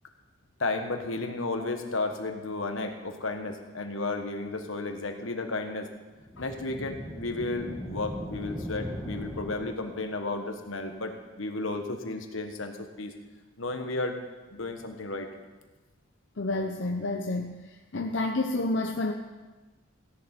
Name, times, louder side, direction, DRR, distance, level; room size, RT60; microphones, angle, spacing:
voice 1, 0.6-5.9 6.4-13.1 13.6-14.2 14.5-15.3, left 2 dB, 80° left, 5 dB, 1.4 m, -33 dB
sound 1, 6.2-10.0, equal, ahead, 2.0 m, -39 dB
voice 2, 16.4-17.5 17.9-19.1, left 2 dB, 65° left, 3 dB, 0.7 m, -29 dB
16.5 x 10.5 x 4.5 m, 1.2 s
head